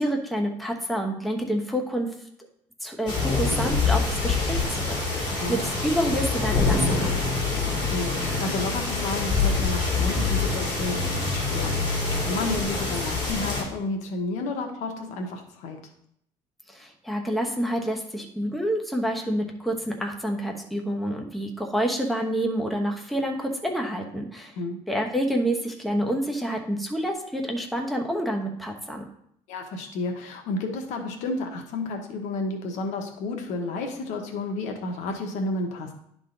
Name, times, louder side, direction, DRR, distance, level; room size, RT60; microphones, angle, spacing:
voice 1, 0.0-2.1 2.8-5.6 5.8-7.1 16.7-24.5 24.9-29.0, equal, ahead, 1 dB, 1.0 m, -28 dB
sound 1, 3.1-13.6, left 3 dB, 35° left, 3.0 m, -25 dB
voice 2, 7.9-11.8 12.2-15.8 24.6-24.8 29.5-35.9, left 2 dB, 80° left, 4 dB, 1.2 m, -31 dB
11.0 x 3.8 x 3.9 m, 0.71 s
cardioid pair, 115°, 12 cm